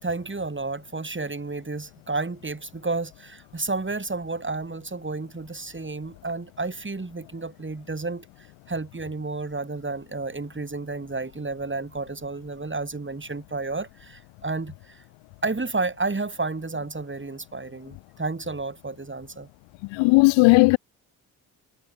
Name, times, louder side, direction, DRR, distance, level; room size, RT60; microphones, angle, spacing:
voice 1, 0.0-15.0 15.4-19.5, right 3 dB, 25° right, 4.8 m, -31 dB
voice 2, 19.9-20.8, left 26 dB, 70° left, 0.5 m, -16 dB
hypercardioid pair, 40°, 47 cm